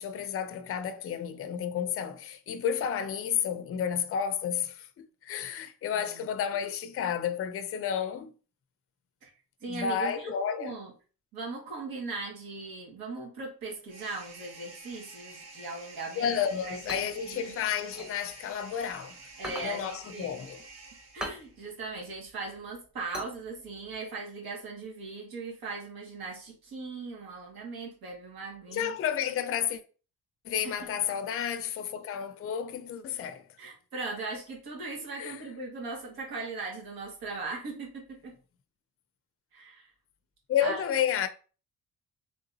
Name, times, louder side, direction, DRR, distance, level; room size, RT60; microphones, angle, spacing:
voice 1, 0.0-4.9 5.2-8.3 9.7-10.7 16.2-19.2 19.6-20.6 28.7-29.8 30.4-33.4 35.2-35.4 40.5-41.3, left 8 dB, 40° left, 0.4 m, -31 dB
voice 2, 9.6-10.3 10.6-10.9 11.3-16.4 16.6-17.5 19.4-20.3 21.1-28.9 30.6-31.0 33.6-38.4 39.5-39.9 40.6-40.8, right 3 dB, 80° right, 1.8 m, -39 dB
sound 1, 13.9-21.6, right 3 dB, 45° right, 1.0 m, -49 dB
sound 2, 16.5-18.9 19.3-24.0, equal, ahead, 0.7 m, -42 dB
3.7 x 3.4 x 2.7 m
cardioid pair, 130°, 36 cm